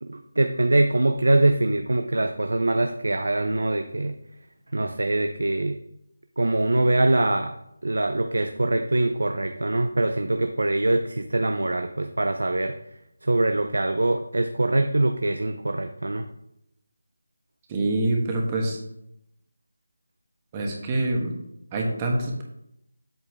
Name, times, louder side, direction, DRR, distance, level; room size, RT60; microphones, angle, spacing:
voice 1, 0.0-4.1 4.7-5.7 6.4-7.5 7.8-12.7 13.2-16.3, right 2 dB, 80° right, 6 dB, 0.6 m, -23 dB
voice 2, 17.7-18.8 20.5-21.3 21.7-22.4, right 2 dB, 20° right, 1 dB, 1.3 m, -25 dB
7.9 x 6.8 x 3.5 m, 0.79 s
figure-of-eight pair, 165°, 0 cm